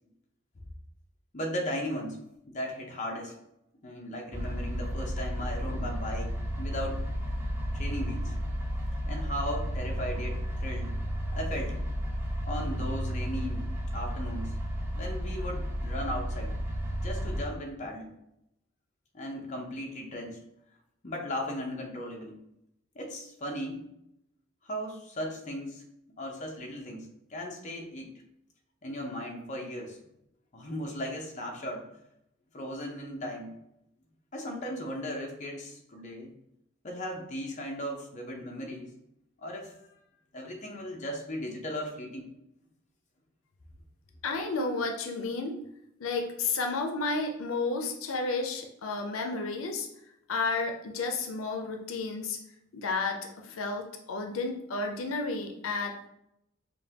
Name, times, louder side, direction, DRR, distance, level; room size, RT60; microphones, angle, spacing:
voice 1, 1.3-2.2 2.5-3.3 3.8-6.3 6.6-7.1 7.7-8.4 9.1-10.9 11.3-11.8 12.4-14.5 15.0-16.5 17.0-18.1 19.1-20.4 21.0-22.4 22.9-23.9 24.6-25.8 26.2-28.1 28.8-30.0 30.5-31.9 32.5-33.5 34.3-36.3 36.8-38.9 39.4-39.8 40.3-42.3, equal, 35° left, 0 dB, 0.7 m, -37 dB
sound 1, 4.3-17.4, equal, 10° right, 0.5 m, -33 dB
voice 2, 44.2-45.5 46.0-49.9 50.3-52.4 52.7-56.1, left 3 dB, 90° left, 3 dB, 0.5 m, -32 dB
5.3 x 2.2 x 2.8 m, 0.81 s
head